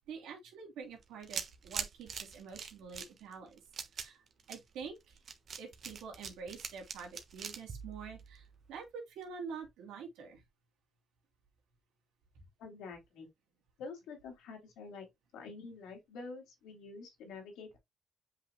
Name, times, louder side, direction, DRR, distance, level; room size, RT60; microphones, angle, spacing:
voice 1, 0.1-3.6 3.9-4.2 4.5-5.2 5.6-10.4, right 5 dB, 90° right, 3.0 m, -47 dB
sound 1, 1.0-8.7, right 6 dB, 55° right, 1.3 m, -43 dB
voice 2, 12.6-13.3 13.8-15.1 15.3-17.8, left 4 dB, 90° left, 2.8 m, -47 dB
7.6 x 5.7 x 2.2 m
cardioid pair, 90°, 0 cm